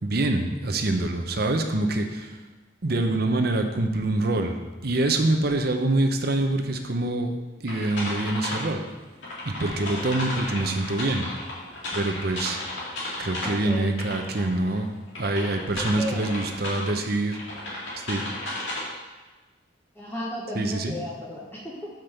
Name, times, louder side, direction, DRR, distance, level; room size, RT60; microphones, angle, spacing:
voice 1, 0.0-2.4 2.8-7.3 7.6-8.8 9.5-11.3 11.9-12.6 13.2-14.9 15.2-17.4 18.1-18.2 20.5-20.9, right 2 dB, 50° right, 5 dB, 0.8 m, -25 dB
sound 1, 7.7-8.6 9.2-14.8 15.1-16.9 17.3-18.8, left 1 dB, 75° left, 2.4 m, -34 dB
voice 2, 13.4-13.9 15.3-16.3 19.9-21.9, equal, 10° left, -5 dB, 1.0 m, -35 dB
6.0 x 5.3 x 6.5 m, 1.2 s
head